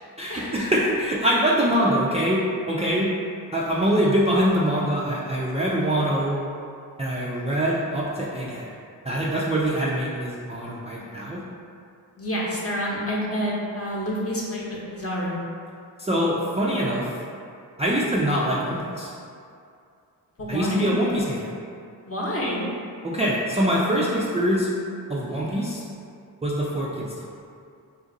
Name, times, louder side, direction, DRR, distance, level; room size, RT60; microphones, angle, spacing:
voice 1, 0.2-2.4 2.7-3.1 3.5-6.4 7.0-8.7 9.1-11.4 16.0-17.2 17.8-19.1 20.5-21.5 23.0-24.7 25.1-25.8 26.4-27.3, equal, 15° right, -6 dB, 0.4 m, -24 dB
voice 2, 12.2-14.6 14.9-15.4 20.4-20.9 22.1-22.6, equal, 35° left, -5 dB, 0.9 m, -28 dB
2.6 x 2.5 x 3.7 m, 2.4 s
supercardioid pair, 40°, 43 cm